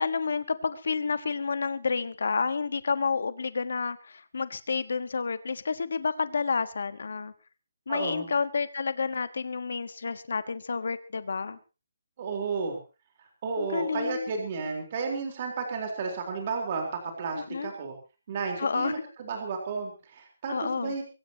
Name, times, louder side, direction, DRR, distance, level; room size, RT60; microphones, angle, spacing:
voice 1, 0.0-7.3 7.9-11.6 13.6-14.3 17.3-17.7 18.6-18.9 20.5-20.9, left 5 dB, 60° left, 13 dB, 1.4 m, -30 dB
voice 2, 7.9-8.3 12.2-12.8 13.4-18.0 18.3-21.0, right 4 dB, 25° right, 2 dB, 4.0 m, -32 dB
22.5 x 17.0 x 2.9 m, 0.32 s
hypercardioid pair, 180°, 0 cm